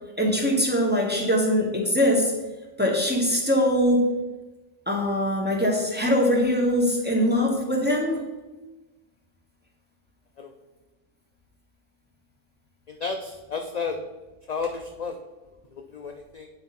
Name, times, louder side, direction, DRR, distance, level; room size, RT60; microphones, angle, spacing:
voice 1, 0.2-2.3 2.8-4.2 4.9-8.2, equal, 10° right, -2 dB, 1.1 m, -22 dB
voice 2, 12.9-14.0 14.5-15.2 15.7-16.5, left 5 dB, 55° left, 3 dB, 0.4 m, -32 dB
8.9 x 4.2 x 4.1 m, 1.1 s
omnidirectional pair, 1.3 m